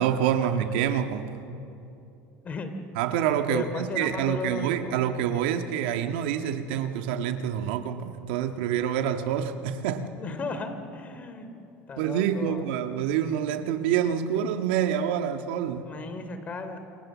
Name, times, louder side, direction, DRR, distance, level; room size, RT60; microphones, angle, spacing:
voice 1, 0.0-1.4 3.0-10.1 12.0-15.9, right 9 dB, 85° right, 7 dB, 1.7 m, -27 dB
voice 2, 3.5-5.1 10.2-11.5 11.9-12.6 15.8-16.8, left 3 dB, 30° left, 8 dB, 3.0 m, -35 dB
29.0 x 27.5 x 7.5 m, 2.8 s
supercardioid pair, 130°, 5 cm